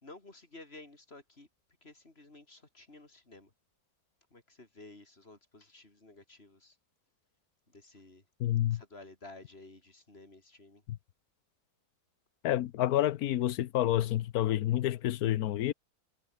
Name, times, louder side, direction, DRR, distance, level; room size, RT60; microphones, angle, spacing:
voice 1, 0.0-1.5 1.8-3.5 4.3-6.8 7.7-8.2 8.7-10.8, left 2 dB, 40° left, 4.3 m, -53 dB
voice 2, 8.4-8.8 10.9-11.0 12.4-15.7, left 13 dB, 75° left, 1.2 m, -29 dB
omnidirectional pair, 1.6 m